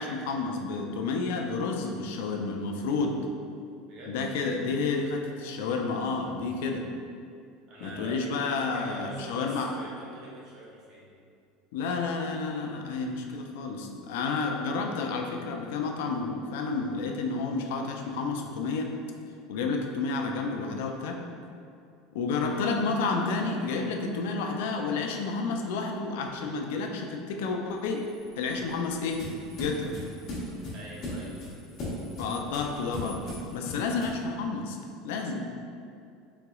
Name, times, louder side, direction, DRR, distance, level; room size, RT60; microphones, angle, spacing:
voice 1, 0.0-3.2 4.1-6.8 7.8-9.7 11.7-18.9 19.5-21.2 22.1-28.0 28.4-29.2 29.6-30.0 32.2-33.2 33.5-34.8 35.0-35.4, left 4 dB, 75° left, 2 dB, 0.4 m, -30 dB
voice 2, 7.7-8.3 8.6-11.1 22.4-22.7 30.7-31.4, right 2 dB, 35° right, -4 dB, 0.7 m, -44 dB
sound 1, 27.7-33.6, left 2 dB, 85° right, 1.4 m, -56 dB
sound 2, 28.2-34.3, left 1 dB, 30° left, 0.8 m, -38 dB
3.8 x 3.0 x 2.3 m, 2.4 s
cardioid pair, 175°, 0 cm